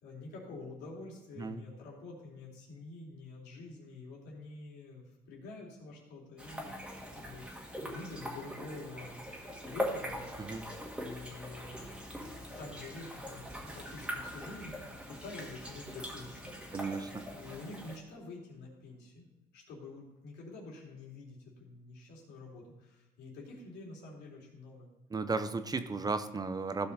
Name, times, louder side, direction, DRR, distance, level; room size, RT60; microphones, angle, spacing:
voice 1, 0.0-6.7 7.1-7.5 7.8-9.2 9.6-10.3 11.0-11.8 12.6-16.6 17.3-24.9 26.8-26.9, left 3 dB, 80° left, -2 dB, 3.1 m, -47 dB
sound 1, 6.4-18.0, equal, 5° right, 1.9 m, -42 dB
voice 2, 16.7-17.4 25.1-26.9, right 4 dB, 20° right, 10 dB, 0.6 m, -35 dB
15.0 x 5.6 x 4.1 m, 1.0 s
cardioid pair, 110°, 17 cm